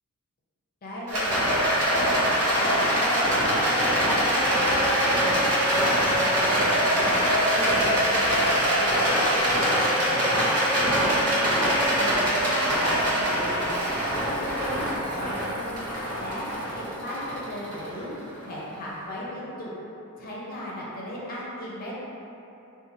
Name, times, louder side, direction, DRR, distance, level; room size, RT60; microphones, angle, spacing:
voice 1, 0.8-1.6 2.0-3.5 3.9-6.4 6.9-7.1 7.5-10.2 10.7-13.7 14.2-16.5 16.7-18.1 18.4-19.7 20.2-22.0, equal, 40° left, -6 dB, 0.5 m, -36 dB
Rattle, 1.1-18.4, equal, 90° right, 0.9 m, -23 dB
4.3 x 2.4 x 2.6 m, 2.9 s
head